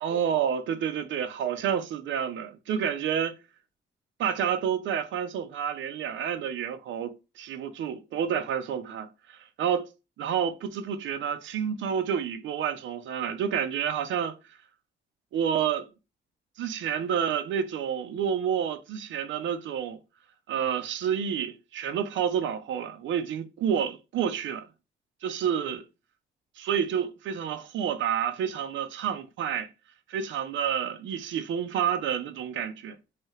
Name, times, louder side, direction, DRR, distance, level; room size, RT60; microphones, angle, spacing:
voice 1, 0.0-3.3 4.2-9.9 10.2-14.3 15.3-15.9 16.6-20.0 20.5-24.7 25.2-25.8 26.6-29.7 30.1-33.0, right 8 dB, 70° right, 0.6 m, -29 dB
3.0 x 2.8 x 3.1 m
cardioid pair, 90°, 20 cm